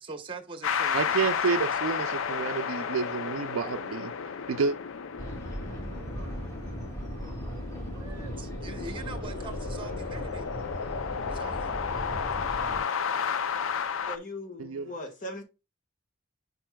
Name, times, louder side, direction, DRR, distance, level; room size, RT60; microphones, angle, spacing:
voice 1, 0.0-1.8 7.9-10.5 11.2-11.8, right 3 dB, 25° right, 0.9 m, -43 dB
sound 1, 0.6-14.2, left 6 dB, 75° left, 0.5 m, -33 dB
voice 2, 0.9-4.1 4.5-4.8 14.6-14.9, right 5 dB, 90° right, 0.4 m, -29 dB
sound 2, 5.2-12.8, equal, 15° left, 2.6 m, -38 dB
voice 3, 14.1-15.4, left 1 dB, 40° left, 1.5 m, -39 dB
8.7 x 5.3 x 2.2 m
head